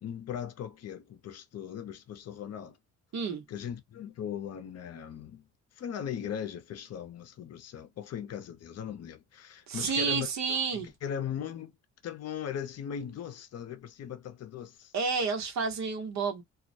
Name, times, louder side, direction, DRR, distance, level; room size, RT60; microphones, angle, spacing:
voice 1, 0.0-2.8 3.5-5.5 5.7-11.7 12.0-14.9, left 8 dB, 55° left, 0.6 m, -39 dB
voice 2, 3.1-3.4 9.7-10.9 14.9-16.4, right 5 dB, 65° right, 1.0 m, -30 dB
2.3 x 2.0 x 2.5 m
cardioid pair, 90°, 30 cm